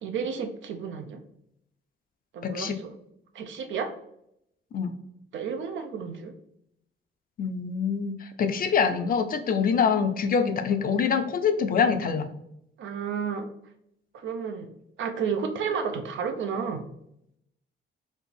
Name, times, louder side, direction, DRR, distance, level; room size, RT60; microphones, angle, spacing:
voice 1, 0.0-1.2 2.3-2.9 3.3-3.9 5.3-6.3 12.8-13.5 14.1-14.7 15.0-16.8, right 6 dB, 70° right, 6 dB, 0.6 m, -31 dB
voice 2, 2.4-2.8 4.7-4.9 7.4-12.3, left 6 dB, 45° left, 8 dB, 0.5 m, -25 dB
4.2 x 2.5 x 3.2 m, 0.77 s
cardioid pair, 90°, 20 cm